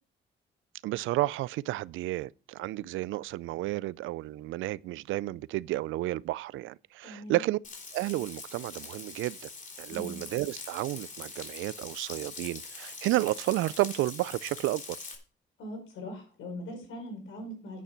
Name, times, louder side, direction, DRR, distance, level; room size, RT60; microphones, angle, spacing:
voice 1, 0.8-7.6 7.9-9.5 9.8-15.0, right 17 dB, 80° right, 0.4 m, -31 dB
voice 2, 7.0-7.4 9.9-10.2 15.6-17.8, left 1 dB, 85° left, 4.8 m, -41 dB
Frying (food), 7.6-15.2, left 4 dB, 40° left, 3.4 m, -43 dB
10.0 x 8.5 x 4.4 m
cardioid pair, 90°, 20 cm